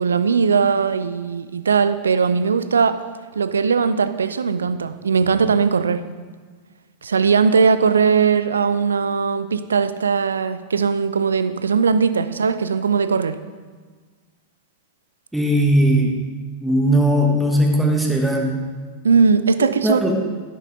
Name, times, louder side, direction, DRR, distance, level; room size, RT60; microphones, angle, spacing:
voice 1, 0.0-3.0 3.4-6.0 7.0-13.4 19.0-20.1, right 5 dB, 70° right, 13 dB, 0.5 m, -19 dB
voice 2, 15.3-16.2 16.6-18.6 19.6-20.1, right 1 dB, 5° right, 1 dB, 1.7 m, -18 dB
12.5 x 11.0 x 3.7 m, 1.5 s
figure-of-eight pair, 90°, 0 cm